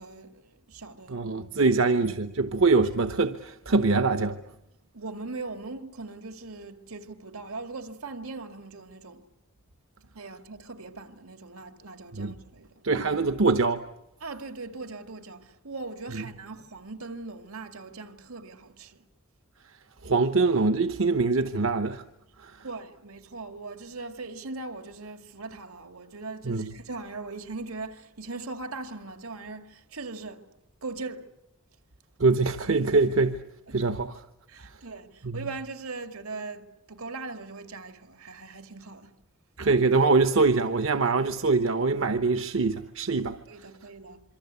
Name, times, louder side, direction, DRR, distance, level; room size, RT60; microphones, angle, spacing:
voice 1, 0.0-1.3 1.6-1.9 4.9-9.2 10.1-12.8 14.2-19.0 22.6-30.5 30.8-31.3 33.7-33.8 34.5-39.1 43.4-44.2, right 3 dB, 85° right, 2.2 m, -40 dB
voice 2, 1.1-4.4 12.1-12.3 12.8-13.8 16.1-16.2 20.0-22.0 22.4-22.5 26.5-26.7 32.2-33.4 33.7-34.1 35.2-35.4 39.6-43.4, right 3 dB, 65° right, 0.9 m, -23 dB
26.5 x 24.5 x 8.3 m
head